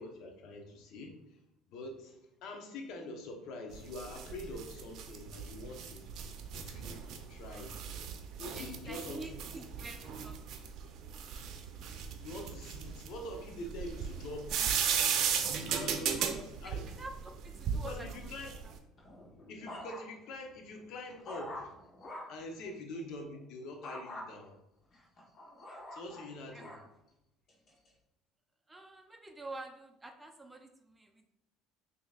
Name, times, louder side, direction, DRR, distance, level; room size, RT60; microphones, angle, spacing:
voice 1, 0.0-1.4 1.7-6.1 6.5-7.9 8.4-9.3 12.2-14.9 15.5-16.3 16.6-16.9 17.8-18.6 19.5-21.7 22.3-24.6 25.9-26.7, left 1 dB, 65° left, 3 dB, 0.9 m, -45 dB
sound 1, 3.7-18.7, right 7 dB, 60° right, 0.6 m, -36 dB
voice 2, 8.5-10.4 10.7-10.8 16.1-18.3 18.6-18.8 22.6-22.7 26.5-26.7 28.7-31.3, right 2 dB, 15° right, 4 dB, 0.5 m, -48 dB
sound 2, 19.0-20.3 20.8-22.5 23.8-24.3 24.9-26.9 27.5-27.9, left 1 dB, 50° left, 1.3 m, -46 dB
6.0 x 2.9 x 2.4 m, 0.90 s
hypercardioid pair, 70°, 0 cm